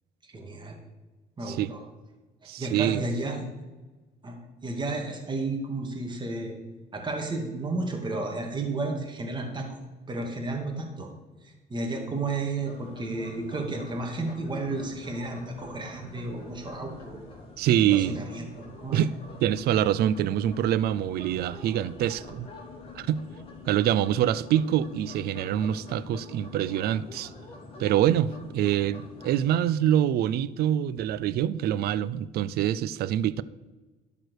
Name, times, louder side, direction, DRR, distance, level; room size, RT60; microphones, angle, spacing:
voice 1, 0.2-0.8 1.4-1.8 2.6-3.4 4.2-4.4 4.6-6.6 6.9-9.8 10.1-11.1 11.4-17.2 17.8-19.0, right 2 dB, 25° right, 2.2 m, -32 dB
voice 2, 2.5-3.0 17.6-18.2 18.9-19.1 19.4-22.5 22.9-23.2 23.7-27.3 27.8-33.4, right 11 dB, 70° right, 0.5 m, -25 dB
sound 1, 12.5-29.6, left 3 dB, 35° left, 3.6 m, -46 dB
12.0 x 4.9 x 6.5 m
cardioid pair, 110°, 17 cm